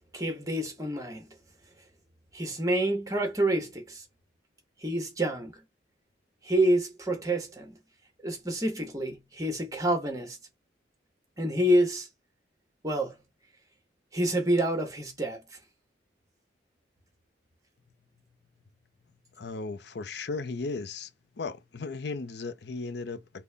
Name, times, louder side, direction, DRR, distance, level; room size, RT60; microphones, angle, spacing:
voice 1, 0.1-1.3 2.3-4.0 4.8-5.5 6.4-7.8 8.2-10.4 11.4-12.1 12.8-13.2 14.1-15.4, right 1 dB, 20° right, 1.0 m, -28 dB
voice 2, 19.4-21.1 21.4-23.4, left 3 dB, 65° left, 0.5 m, -36 dB
3.9 x 2.1 x 3.3 m
head